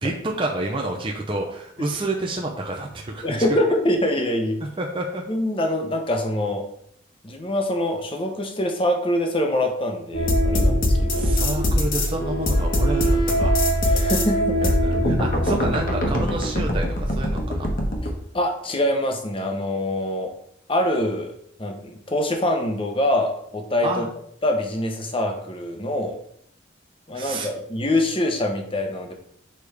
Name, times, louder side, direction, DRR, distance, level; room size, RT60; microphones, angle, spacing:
voice 1, 0.0-3.6 4.6-5.2 11.1-13.5 14.8-17.7 23.8-24.1 27.1-27.5, right 2 dB, 25° right, 0 dB, 0.6 m, -29 dB
voice 2, 3.2-4.6 5.3-6.6 7.2-11.3 13.9-14.8 18.3-20.3 20.7-21.3 21.6-24.1 24.4-26.2 27.1-29.1, left 1 dB, 25° left, 3 dB, 0.9 m, -24 dB
sound 1, 10.1-18.1, equal, 45° left, 1.2 m, -21 dB
6.7 x 5.0 x 3.4 m, 0.68 s
head